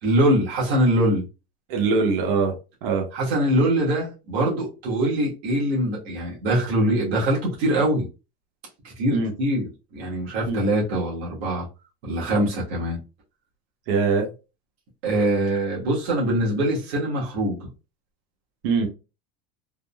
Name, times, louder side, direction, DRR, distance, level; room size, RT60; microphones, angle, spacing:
voice 1, 0.0-1.2 3.1-8.1 8.8-11.7 12.0-13.0 15.0-17.7, right 1 dB, 75° right, 1.4 m, -23 dB
voice 2, 1.7-2.5 2.8-3.0 9.1-9.3 10.5-10.6 13.9-14.2 18.6-18.9, right 4 dB, 60° right, 0.9 m, -22 dB
3.6 x 2.0 x 2.3 m
supercardioid pair, 175°, 32 cm